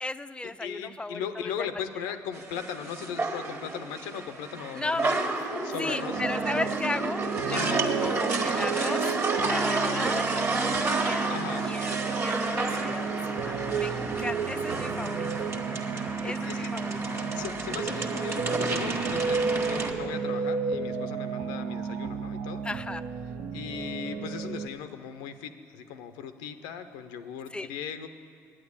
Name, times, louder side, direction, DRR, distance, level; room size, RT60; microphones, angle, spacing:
voice 1, 0.0-1.7 4.7-5.0 5.8-9.0 9.4-11.3 11.6-15.5 16.2-17.2 22.6-23.0 27.5-27.7, left 2 dB, 15° left, 13 dB, 0.4 m, -36 dB
voice 2, 0.6-5.1 5.6-6.2 7.5-7.9 11.3-11.7 16.2-16.7 17.3-22.6 23.5-28.1, left 8 dB, 85° left, 9 dB, 0.6 m, -38 dB
sound 1, 2.3-19.9, right 3 dB, 35° right, 1.4 m, -31 dB
sound 2, 6.1-24.7, right 6 dB, 65° right, 0.6 m, -33 dB
9.0 x 8.7 x 8.6 m, 2.2 s
supercardioid pair, 65°, 8 cm